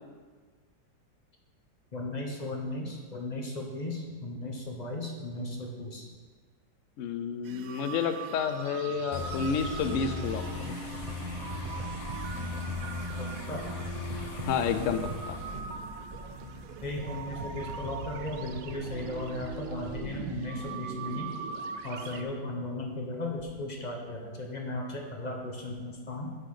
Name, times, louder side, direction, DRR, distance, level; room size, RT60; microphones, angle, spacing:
voice 1, 1.9-6.1 13.2-13.6 16.8-21.3 21.8-26.3, left 1 dB, 30° left, 0 dB, 0.9 m, -36 dB
voice 2, 7.0-10.7 14.5-15.0 15.3-15.4, left 6 dB, 90° left, 9 dB, 0.6 m, -30 dB
sound 1, 7.4-22.2, right 6 dB, 75° right, 0.8 m, -42 dB
sound 2, 9.1-15.6, left 4 dB, 55° left, 0.8 m, -38 dB
sound 3, 9.2-21.4 22.0-22.1, right 2 dB, 50° right, 0.4 m, -42 dB
9.4 x 3.9 x 6.7 m, 1.5 s
omnidirectional pair, 2.0 m